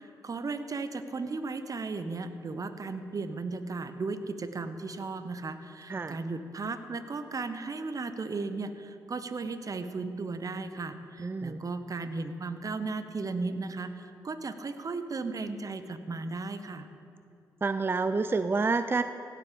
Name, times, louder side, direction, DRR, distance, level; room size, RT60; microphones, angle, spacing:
voice 1, 0.0-16.9, right 3 dB, 45° right, 10 dB, 1.0 m, -35 dB
voice 2, 11.2-11.6 17.6-19.0, right 4 dB, 25° right, 11 dB, 0.4 m, -28 dB
16.5 x 7.6 x 5.2 m, 2.6 s
hypercardioid pair, 45°, 9 cm